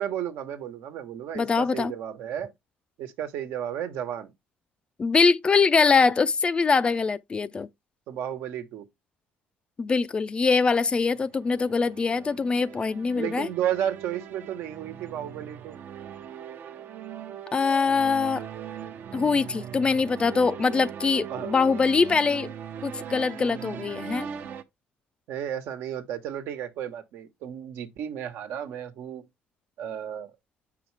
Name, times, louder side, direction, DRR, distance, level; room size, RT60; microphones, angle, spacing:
voice 1, 0.0-2.5 3.0-4.3 8.1-8.9 13.2-15.8 21.3-21.6 25.3-29.2 29.8-30.3, right 10 dB, 75° right, 1.2 m, -33 dB
voice 2, 1.3-1.9 5.0-7.7 9.8-13.5 17.5-18.5 19.1-22.5 22.8-24.3, left 4 dB, 25° left, 0.4 m, -23 dB
sound 1, 10.8-24.6, right 8 dB, 55° right, 0.8 m, -40 dB
7.3 x 5.7 x 3.3 m
cardioid pair, 125°, 4 cm